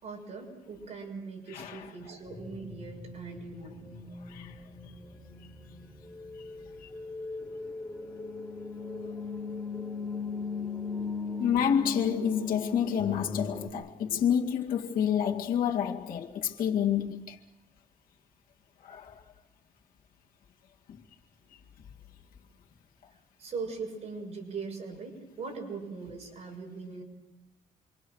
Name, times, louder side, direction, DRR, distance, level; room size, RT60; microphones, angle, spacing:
voice 1, 0.0-3.8 21.4-21.5 23.1-27.0, right 4 dB, 50° right, 6.6 m, -40 dB
voice 2, 1.5-1.9 4.3-4.5 6.8-6.9 11.4-17.4 18.8-19.2 20.9-21.0, left 8 dB, 90° left, 2.1 m, -29 dB
sound 1, 2.3-13.7, left 4 dB, 10° left, 3.7 m, -39 dB
27.5 x 24.5 x 6.3 m
cardioid pair, 155°, 14 cm